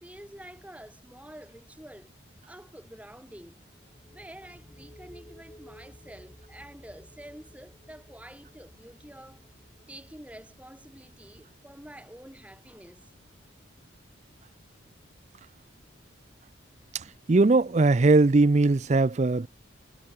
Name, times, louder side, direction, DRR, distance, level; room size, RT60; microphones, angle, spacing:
voice 1, 0.0-2.1 2.5-3.6 4.0-9.4 9.9-13.1, right 1 dB, 5° right, 1.8 m, -48 dB
sound 1, 3.7-15.2, equal, 20° left, 2.3 m, -56 dB
voice 2, 16.9-19.5, right 3 dB, 35° right, 0.5 m, -20 dB
head